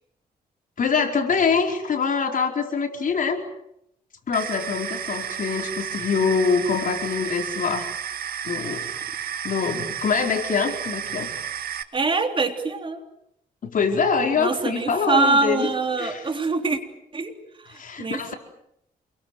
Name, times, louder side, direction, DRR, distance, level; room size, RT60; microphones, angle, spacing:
voice 1, 0.8-3.4 4.3-7.9 8.4-9.0 9.4-11.3 13.6-15.7 16.0-16.3 17.7-18.3, left 5 dB, 60° left, 4 dB, 4.7 m, -24 dB
sound 1, 4.3-11.8, right 8 dB, 70° right, 1.9 m, -32 dB
voice 2, 11.9-13.0 14.4-16.8 17.1-17.4 17.6-18.3, right 3 dB, 30° right, 6 dB, 3.5 m, -24 dB
28.0 x 23.0 x 7.9 m, 0.77 s
cardioid pair, 100°, 16 cm